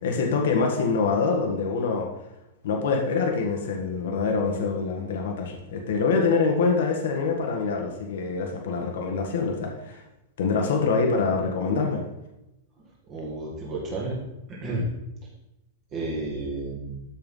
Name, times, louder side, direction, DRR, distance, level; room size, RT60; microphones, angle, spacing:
voice 1, 0.0-2.1 2.6-10.0 10.4-12.0, left 4 dB, 60° left, 2 dB, 1.6 m, -25 dB
voice 2, 13.1-14.2 14.5-14.9 15.9-17.0, right 2 dB, 20° right, -3 dB, 1.9 m, -31 dB
13.0 x 4.6 x 5.5 m, 0.94 s
supercardioid pair, 180°, 0 cm